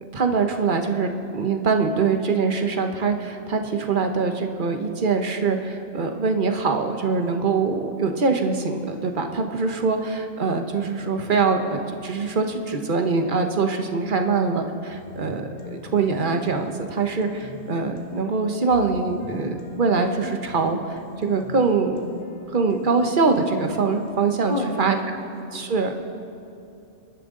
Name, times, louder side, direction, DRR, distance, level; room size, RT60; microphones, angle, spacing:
voice 1, 0.1-20.8 21.2-22.0 22.5-25.0 25.5-26.0, right 4 dB, 45° right, 5 dB, 1.1 m, -23 dB
sound 1, 14.9-25.0, left 2 dB, 60° left, 1.9 m, -40 dB
voice 2, 24.5-25.8, left 2 dB, 40° left, 1 dB, 1.9 m, -32 dB
26.0 x 12.0 x 3.8 m, 2.6 s
omnidirectional pair, 1.3 m